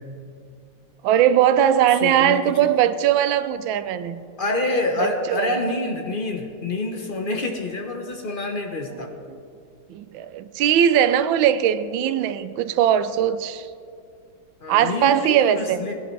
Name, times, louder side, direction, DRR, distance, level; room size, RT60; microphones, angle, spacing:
voice 1, 1.0-4.3 5.0-5.7 8.9-9.0 9.9-13.7 14.7-15.8, right 10 dB, 85° right, 1.4 m, -20 dB
voice 2, 1.9-2.4 4.4-9.1 14.6-15.9, left 2 dB, 40° left, 0.8 m, -27 dB
20.0 x 11.0 x 3.2 m
omnidirectional pair, 2.1 m